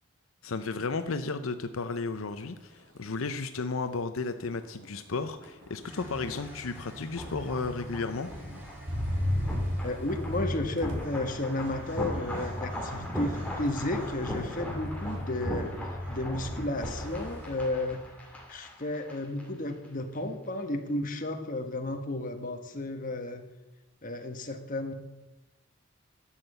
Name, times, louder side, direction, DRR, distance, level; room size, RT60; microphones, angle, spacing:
voice 1, 0.4-8.3, left 4 dB, 85° left, 9 dB, 0.7 m, -33 dB
Motor vehicle (road), 1.7-2.0 2.3-16.7 17.1-17.6, left 1 dB, 65° right, 3.6 m, -38 dB
sound 1, 5.6-19.4 19.7-19.9, equal, 5° left, 2.4 m, -39 dB
sound 2, 5.8-17.5, right 1 dB, 10° right, 4.1 m, -50 dB
voice 2, 9.8-23.4 24.0-24.9, left 2 dB, 40° left, 5 dB, 1.4 m, -33 dB
12.0 x 7.4 x 7.9 m, 1.1 s
head